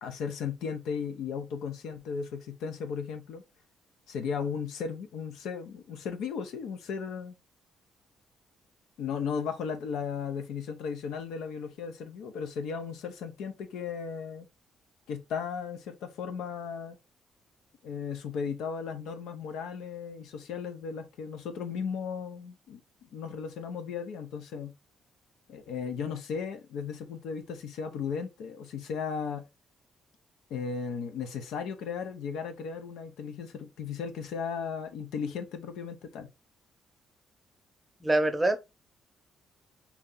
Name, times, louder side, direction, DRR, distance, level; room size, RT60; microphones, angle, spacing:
voice 1, 0.0-3.4 4.1-7.3 9.0-14.5 15.1-17.0 17.8-24.7 25.5-29.5 30.5-36.3, left 6 dB, 85° left, 0.6 m, -36 dB
voice 2, 38.0-38.6, right 2 dB, 10° right, 0.7 m, -24 dB
3.0 x 2.8 x 3.7 m
cardioid pair, 90°, 0 cm